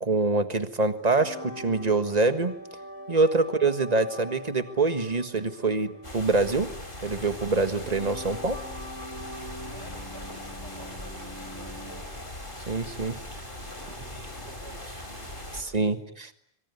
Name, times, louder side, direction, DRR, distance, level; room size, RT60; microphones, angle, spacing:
voice 1, 0.0-2.6 3.1-6.7 7.0-8.6 12.7-13.2 15.5-16.3, right 3 dB, 35° right, 10 dB, 1.8 m, -25 dB
sound 1, 1.2-12.0, equal, 15° left, 2.6 m, -43 dB
sound 2, 6.0-15.6, left 1 dB, 50° left, 4.7 m, -40 dB
voice 2, 9.6-12.2 13.7-15.4, right 1 dB, 70° right, 2 dB, 6.6 m, -50 dB
26.0 x 23.5 x 9.7 m, 0.70 s
omnidirectional pair, 1.2 m